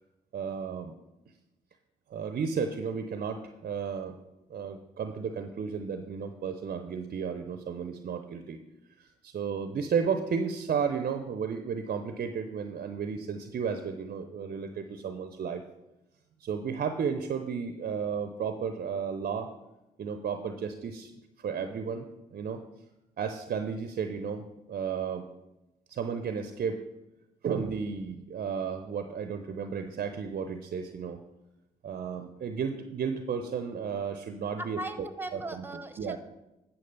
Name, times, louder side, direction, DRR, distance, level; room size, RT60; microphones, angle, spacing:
voice 1, 0.3-0.9 2.1-4.2 4.5-8.6 9.0-15.6 16.4-19.5 20.0-21.1 21.4-22.6 23.2-25.3 25.9-26.8 27.4-31.2 31.8-34.8 35.3-35.6 36.0-36.2, right 6 dB, 50° right, 8 dB, 0.7 m, -33 dB
voice 2, 34.6-36.2, right 1 dB, 10° right, 10 dB, 1.2 m, -38 dB
9.6 x 5.9 x 5.4 m, 0.95 s
hypercardioid pair, 40°, 20 cm